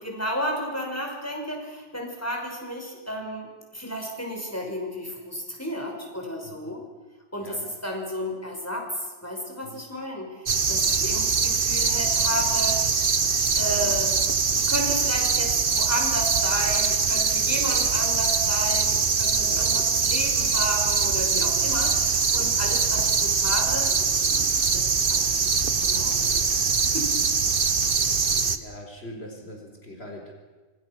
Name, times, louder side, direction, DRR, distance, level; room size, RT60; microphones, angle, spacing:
voice 1, 0.0-3.5 3.7-6.8 7.3-10.4 10.7-12.8 13.6-14.1 14.5-24.4 24.7-25.5 25.8-26.5 26.9-27.1, equal, 15° left, 1 dB, 6.0 m, -32 dB
sound 1, 10.5-28.6, right 5 dB, 60° right, 1.4 m, -23 dB
voice 2, 19.4-19.8 28.0-28.2 28.5-30.3, equal, 85° left, 2 dB, 4.3 m, -42 dB
27.0 x 25.0 x 6.2 m, 1.3 s
omnidirectional pair, 1.0 m